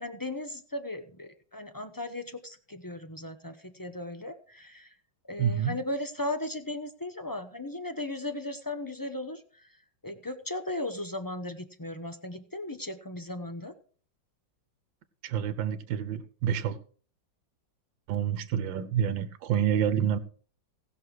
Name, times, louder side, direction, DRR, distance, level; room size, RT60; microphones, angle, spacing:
voice 1, 0.0-4.9 5.2-9.8 10.0-13.7, left 1 dB, 25° left, 0.4 m, -37 dB
voice 2, 5.4-5.8 15.2-16.8 18.1-20.2, right 9 dB, 85° right, 1.6 m, -28 dB
17.5 x 6.5 x 4.8 m
omnidirectional pair, 2.0 m